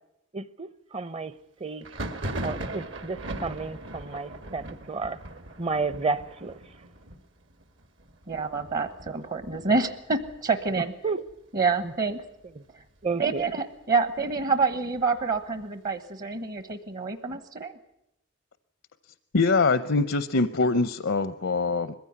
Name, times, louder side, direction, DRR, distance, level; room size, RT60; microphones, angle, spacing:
voice 1, 0.3-1.3 1.6-1.9 2.4-5.2 5.6-6.6 11.0-11.2 13.0-13.4, right 4 dB, 30° right, 0.7 m, -31 dB
Thunder, 1.8-11.3 11.6-12.3 12.5-13.5 13.9-15.6, right 1 dB, 70° right, 1.9 m, -40 dB
voice 2, 8.3-10.9 11.5-12.2 13.2-17.7, right 4 dB, 45° right, 1.2 m, -27 dB
voice 3, 19.3-21.9, left 3 dB, 75° left, 0.7 m, -23 dB
21.5 x 15.5 x 9.6 m
head